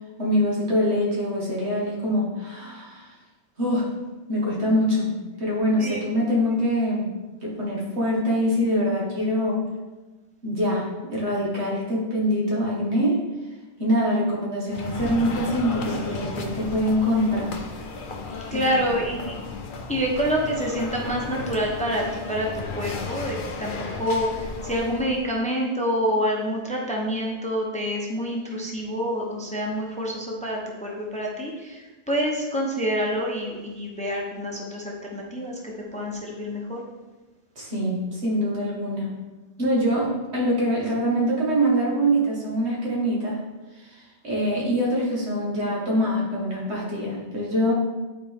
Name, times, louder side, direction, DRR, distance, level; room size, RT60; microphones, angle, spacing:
voice 1, 0.2-3.1 3.6-3.9 4.3-5.1 5.4-7.1 7.4-9.6 10.4-13.2 13.8-17.5 18.5-18.8 19.2-19.3 37.6-39.1 39.6-43.4 43.8-47.7, equal, 70° right, -5 dB, 2.2 m, -24 dB
voice 2, 5.8-6.1 18.5-19.4 19.9-23.7 24.0-36.8, equal, 5° left, -2 dB, 0.9 m, -27 dB
sound 1, 14.7-25.3, left 3 dB, 50° left, 0.9 m, -34 dB
9.9 x 4.4 x 3.6 m, 1.2 s
omnidirectional pair, 1.2 m